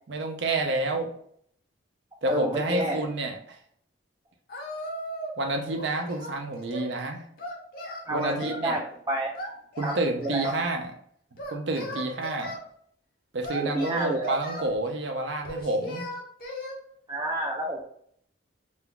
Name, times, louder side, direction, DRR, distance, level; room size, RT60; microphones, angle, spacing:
voice 1, 0.1-1.1 2.2-3.6 5.4-7.2 8.1-8.8 9.8-10.9 11.5-12.5 13.3-16.1, right 2 dB, 65° right, 4 dB, 0.6 m, -29 dB
voice 2, 2.3-3.0 8.1-9.3 9.8-9.9 10.2-10.5 13.6-14.4 17.1-17.9, right 1 dB, 20° right, -1 dB, 0.3 m, -29 dB
Singing, 4.5-5.4 5.7-6.9 7.4-8.7 9.4-10.7 11.4-12.6 13.4-14.7 15.4-16.8, equal, 50° left, 0.6 m, -37 dB
2.5 x 2.2 x 3.7 m, 0.63 s
head